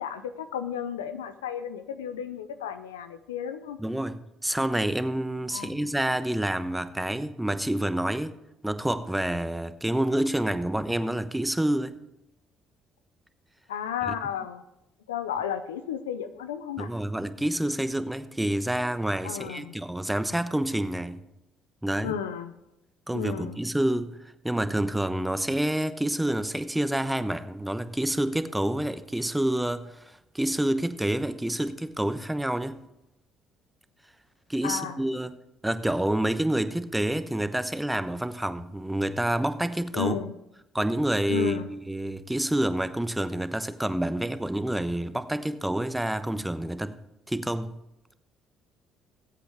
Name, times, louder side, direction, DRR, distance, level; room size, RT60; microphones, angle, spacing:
voice 1, 0.0-3.8 5.5-5.9 13.7-14.6 15.1-16.9 19.2-19.8 22.0-22.5 23.1-23.6 34.6-35.0 39.9-40.3 41.3-41.7, left 8 dB, 90° left, 11 dB, 0.6 m, -33 dB
voice 2, 3.8-8.3 8.6-12.0 16.8-21.2 21.8-22.2 23.1-24.2 24.4-32.8 34.5-35.3 35.6-40.1 40.7-47.0 47.3-47.7, right 1 dB, 10° right, 11 dB, 1.0 m, -28 dB
20.0 x 8.2 x 3.5 m, 0.87 s
hypercardioid pair, 55°, 0 cm